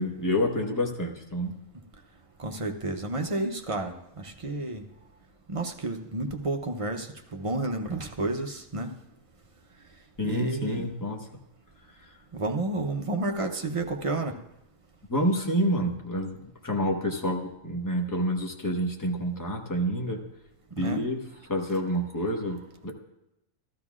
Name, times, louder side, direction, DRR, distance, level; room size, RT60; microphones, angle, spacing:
voice 1, 0.0-1.5 10.2-11.2 15.1-20.2 20.8-21.2 21.5-22.9, equal, 15° left, 1 dB, 1.1 m, -28 dB
voice 2, 2.4-4.8 5.5-8.9 10.2-10.9 12.3-14.3 20.7-21.0, right 2 dB, 35° right, 4 dB, 0.6 m, -31 dB
14.5 x 12.5 x 2.4 m, 0.87 s
omnidirectional pair, 1.3 m